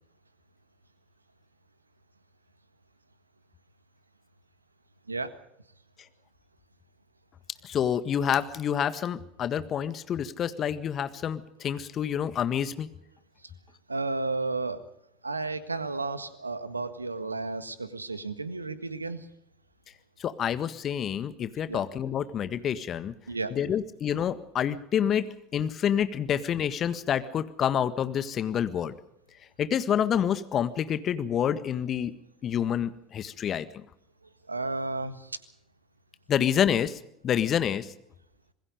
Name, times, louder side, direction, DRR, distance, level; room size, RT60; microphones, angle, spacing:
voice 1, 7.6-12.9 20.2-23.1 23.5-28.9 29.6-32.1 32.4-33.8 36.3-37.9, left 9 dB, 40° left, 13 dB, 1.6 m, -28 dB
voice 2, 13.9-14.8 15.2-19.3 21.7-21.8 23.3-23.6 34.5-35.4, right 3 dB, 90° right, 12 dB, 1.6 m, -33 dB
26.5 x 21.5 x 5.1 m, 0.77 s
figure-of-eight pair, 70°, 0 cm